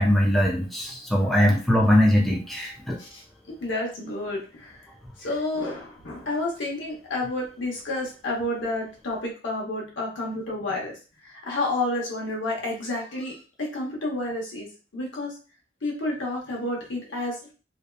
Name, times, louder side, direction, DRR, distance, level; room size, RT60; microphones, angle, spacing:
voice 1, 0.0-3.0, left 1 dB, ahead, -2 dB, 0.4 m, -21 dB
voice 2, 3.6-4.8 5.2-10.9 11.2-14.7 14.9-15.3 15.8-17.5, left 2 dB, 80° left, -2 dB, 0.9 m, -30 dB
2.7 x 2.1 x 2.3 m, 0.36 s
head